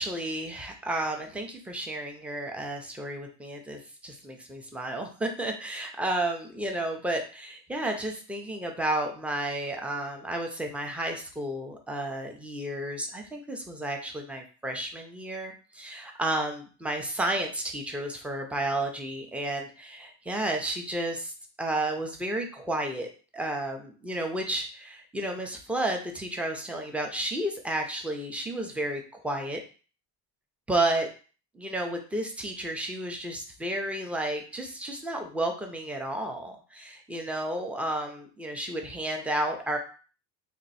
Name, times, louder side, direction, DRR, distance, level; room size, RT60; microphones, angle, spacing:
voice 1, 0.0-21.3 21.6-29.6 30.7-31.1 31.5-39.8, right 1 dB, 5° right, 3 dB, 0.5 m, -32 dB
2.9 x 2.7 x 4.1 m, 0.38 s
supercardioid pair, 105°, 49 cm